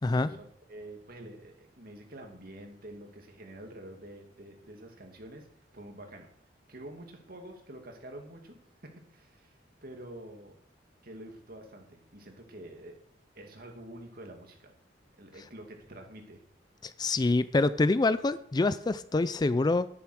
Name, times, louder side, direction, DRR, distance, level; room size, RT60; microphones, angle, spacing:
voice 1, 0.1-5.5 5.7-10.5 11.0-12.9 13.3-14.7 15.2-16.4, right 1 dB, 50° right, 3 dB, 2.3 m, -47 dB
voice 2, 16.8-19.9, left 2 dB, 20° left, 15 dB, 0.4 m, -26 dB
10.5 x 9.3 x 6.3 m, 0.69 s
head